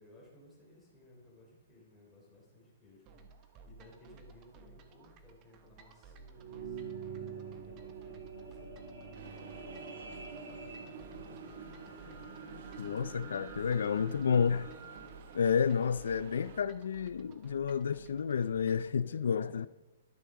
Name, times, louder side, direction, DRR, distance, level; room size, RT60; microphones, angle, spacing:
voice 1, 0.0-3.0 3.3-3.4 3.7-8.8 9.2-12.3 14.1-14.7 19.0-19.7, left 1 dB, 5° left, 3.3 m, -59 dB
sound 1, 3.1-18.9, right 4 dB, 20° right, 0.9 m, -57 dB
sound 2, 6.1-16.6 17.2-17.3, right 5 dB, 80° right, 2.5 m, -46 dB
sound 3, 9.1-16.6, right 8 dB, 45° right, 0.8 m, -54 dB
voice 2, 12.8-14.6 15.3-19.7, left 6 dB, 80° left, 0.4 m, -30 dB
12.5 x 11.5 x 3.7 m
hypercardioid pair, 170°, 0 cm